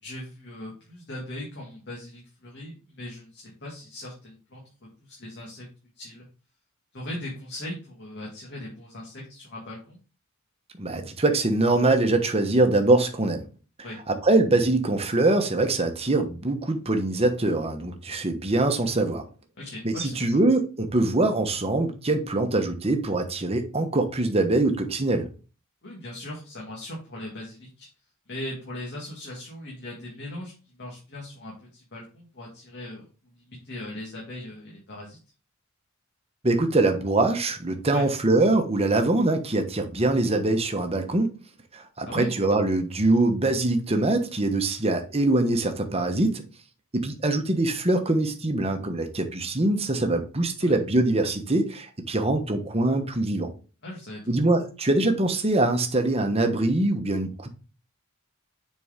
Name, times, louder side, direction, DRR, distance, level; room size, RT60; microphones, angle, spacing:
voice 1, 0.0-5.7 6.0-6.3 6.9-10.0 13.8-14.0 19.6-20.3 25.8-27.9 28.3-33.1 33.4-35.2 37.9-38.0 42.1-42.3 50.6-50.8 53.8-54.3, left 1 dB, 50° left, 2.0 m, -39 dB
voice 2, 10.8-13.4 14.1-19.2 19.8-25.3 36.4-41.4 41.7-46.4 46.9-53.5 54.3-57.5, right 2 dB, 30° right, 1.1 m, -23 dB
6.9 x 4.6 x 3.7 m
head